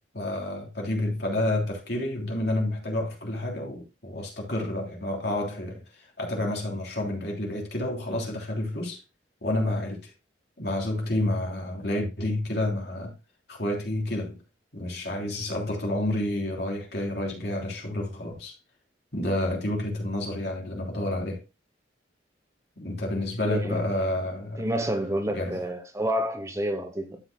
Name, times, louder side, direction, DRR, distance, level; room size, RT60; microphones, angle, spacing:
voice 1, 0.1-9.0 9.4-10.1 10.6-13.1 13.5-14.4 14.7-18.6 19.1-21.4 22.8-24.6 25.3-25.6, left 1 dB, 60° left, 3.2 m, -29 dB
voice 2, 23.4-23.9 24.6-27.2, right 1 dB, 15° right, 0.9 m, -29 dB
11.5 x 7.7 x 2.2 m
head